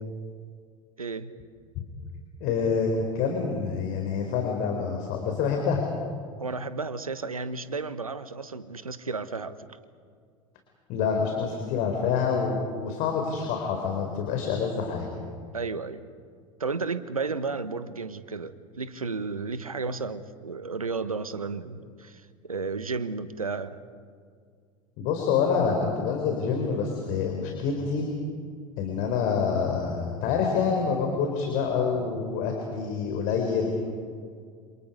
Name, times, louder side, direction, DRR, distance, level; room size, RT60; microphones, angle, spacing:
voice 1, 1.0-1.3 6.4-9.6 15.5-16.0 16.6-23.8, right 4 dB, 85° right, 13 dB, 1.2 m, -33 dB
voice 2, 2.4-5.8 10.9-15.1 25.0-28.1 28.8-33.7, left 6 dB, 50° left, 2 dB, 3.8 m, -27 dB
29.0 x 27.0 x 5.3 m, 2.1 s
figure-of-eight pair, 80°, 18 cm